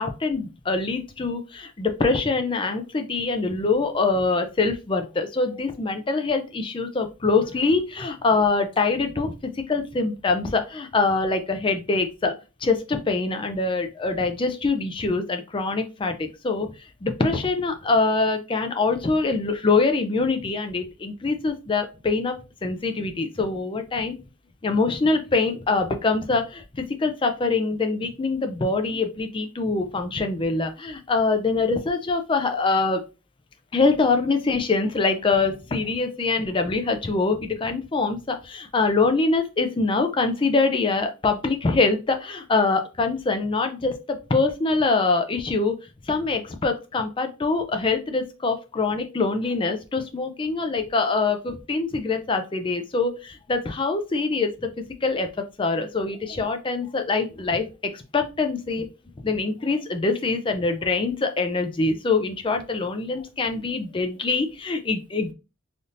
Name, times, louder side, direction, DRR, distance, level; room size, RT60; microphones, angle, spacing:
voice 1, 0.0-12.3 12.6-16.7 17.0-22.3 22.6-24.2 24.6-33.0 33.7-45.7 46.1-54.7 55.0-58.9 59.2-65.3, left 3 dB, 25° left, 6 dB, 0.4 m, -24 dB
3.4 x 2.7 x 2.5 m, 0.30 s
head